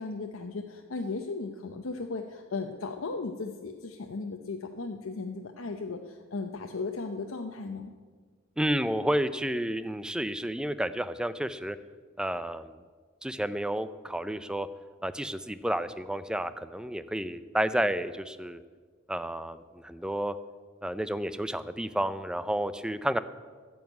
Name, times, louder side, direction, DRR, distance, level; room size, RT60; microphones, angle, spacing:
voice 1, 0.0-7.9, left 3 dB, 85° left, 3 dB, 0.8 m, -36 dB
voice 2, 8.6-11.8 12.2-12.7 13.2-14.7 15.0-18.6 19.1-19.6 19.8-20.3 20.8-23.2, right 1 dB, 5° right, 13 dB, 0.4 m, -31 dB
11.0 x 7.2 x 9.3 m, 1.5 s
head